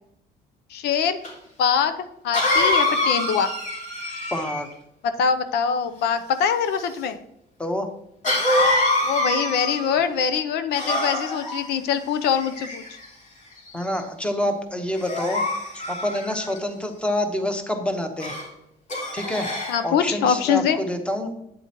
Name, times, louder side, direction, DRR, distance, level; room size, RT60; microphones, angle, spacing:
voice 1, 0.7-1.2 1.6-3.5 5.0-7.2 9.0-12.8 19.7-20.8, left 7 dB, 80° left, 10 dB, 0.6 m, -23 dB
Cough, 1.2-1.3 2.3-4.7 8.2-10.0 10.7-11.6 12.4-13.1 13.7-14.0 15.0-16.6 18.2-18.5 18.9-19.8, left 1 dB, 50° left, 2.9 m, -25 dB
voice 2, 4.3-4.7 7.6-7.9 13.7-15.4 15.7-18.3 19.1-19.5 19.8-21.3, left 1 dB, 5° left, 6 dB, 1.1 m, -27 dB
8.5 x 8.0 x 3.0 m, 0.80 s
cardioid pair, 110°, 17 cm